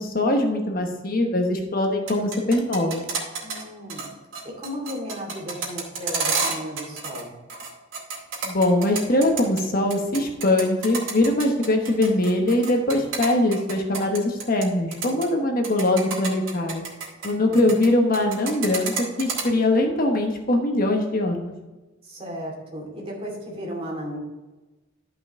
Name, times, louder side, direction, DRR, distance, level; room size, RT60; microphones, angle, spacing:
voice 1, 0.0-3.0 8.4-16.8 17.2-21.5, left 1 dB, 50° left, 2 dB, 1.1 m, -22 dB
sound 1, 1.9-3.6 3.9-4.1 4.3-7.2 7.5-9.6 9.9-14.7 14.9-15.3 15.6-17.9 18.1-19.4, right 5 dB, 85° right, 2.3 m, -29 dB
voice 2, 3.4-4.1 4.4-7.4 17.2-17.7 22.0-24.2, equal, 30° right, -2 dB, 2.5 m, -35 dB
12.5 x 5.4 x 3.6 m, 1.1 s
head